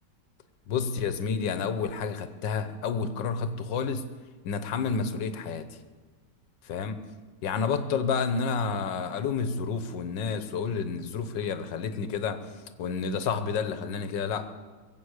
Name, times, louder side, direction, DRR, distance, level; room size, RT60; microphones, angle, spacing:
voice 1, 0.7-4.1 4.4-5.6 6.6-7.0 7.4-12.4 12.8-14.5, left 5 dB, 90° left, 11 dB, 1.7 m, -30 dB
21.5 x 8.0 x 8.1 m, 1.4 s
omnidirectional pair, 1.9 m